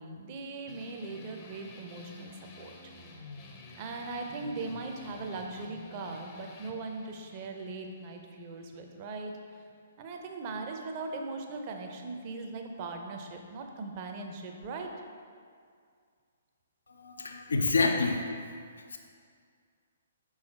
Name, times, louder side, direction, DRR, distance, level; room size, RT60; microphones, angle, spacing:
voice 1, 0.0-2.9 3.8-9.4 10.0-14.9, right 3 dB, 35° right, 3 dB, 0.7 m, -39 dB
sound 1, 0.7-9.7, left 2 dB, 30° left, 0.7 m, -50 dB
voice 2, 16.9-18.2 18.9-19.0, left 3 dB, 70° left, 4 dB, 0.5 m, -27 dB
5.7 x 4.8 x 4.4 m, 2.2 s
figure-of-eight pair, 125°, 0 cm